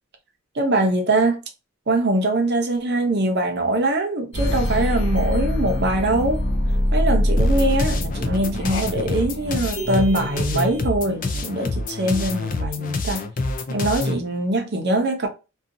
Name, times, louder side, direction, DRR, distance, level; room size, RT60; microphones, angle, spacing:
voice 1, 0.5-1.4 1.9-6.4 6.9-13.3 13.7-15.3, right 1 dB, 50° right, 0.6 m, -22 dB
sound 1, 4.3-10.9, left 1 dB, 60° left, 0.7 m, -24 dB
sound 2, 7.4-14.2, left 2 dB, 40° left, 0.4 m, -27 dB
2.6 x 2.3 x 2.6 m
head